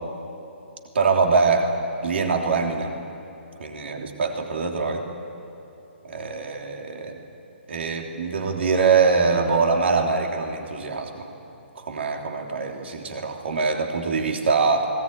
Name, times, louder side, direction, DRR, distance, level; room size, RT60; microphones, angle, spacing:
voice 1, 0.9-1.7 2.0-2.9 3.6-5.0 6.0-7.2 7.7-11.3 11.8-14.9, right 4 dB, 65° right, 2 dB, 3.2 m, -23 dB
20.0 x 19.5 x 9.4 m, 2.8 s
figure-of-eight pair, 140°, 7 cm